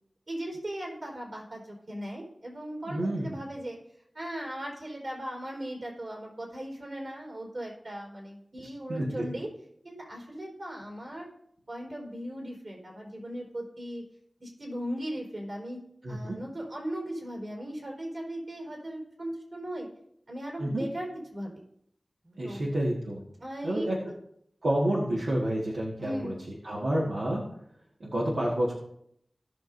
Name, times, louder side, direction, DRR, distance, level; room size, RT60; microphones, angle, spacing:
voice 1, 0.3-3.8 4.1-9.5 9.8-11.3 11.7-14.0 14.4-19.9 20.3-21.6 22.2-22.7 23.4-23.9 26.0-26.4, right 1 dB, 60° right, -1 dB, 4.0 m, -38 dB
voice 2, 2.9-3.4 8.9-9.3 16.0-16.4 20.6-20.9 22.4-23.2 23.6-24.0 24.6-26.3 26.6-27.4 28.0-28.7, right 1 dB, 90° right, -5 dB, 1.7 m, -29 dB
18.0 x 6.3 x 2.7 m, 0.71 s
wide cardioid pair, 60°, 0 cm